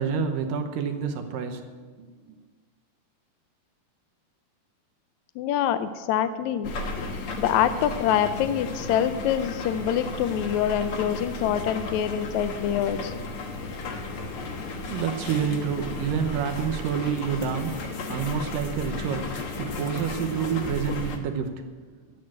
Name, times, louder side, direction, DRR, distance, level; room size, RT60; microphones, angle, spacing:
voice 1, 0.0-1.6 2.0-2.4 14.5-14.6 14.8-21.6, right 7 dB, 75° right, 5 dB, 2.6 m, -28 dB
voice 2, 5.4-6.7 7.4-13.1, left 10 dB, 85° left, 11 dB, 1.6 m, -25 dB
sound 1, 6.6-21.2, left 3 dB, 60° left, 1.5 m, -34 dB
12.0 x 9.4 x 7.6 m, 1.4 s
omnidirectional pair, 4.0 m